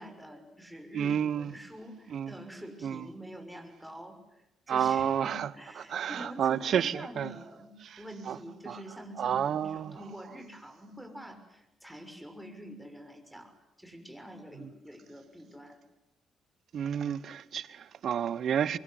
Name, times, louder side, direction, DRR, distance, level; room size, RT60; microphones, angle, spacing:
voice 1, 0.0-15.8, equal, ahead, 6.3 m, -46 dB
voice 2, 0.9-1.5 2.1-2.3 2.8-3.0 4.7-5.5 5.9-7.3 8.3-8.4 8.7-8.8 9.2-10.0 16.7-18.8, right 8 dB, 60° right, 1.2 m, -30 dB
24.0 x 23.5 x 9.8 m
cardioid pair, 90°, 0 cm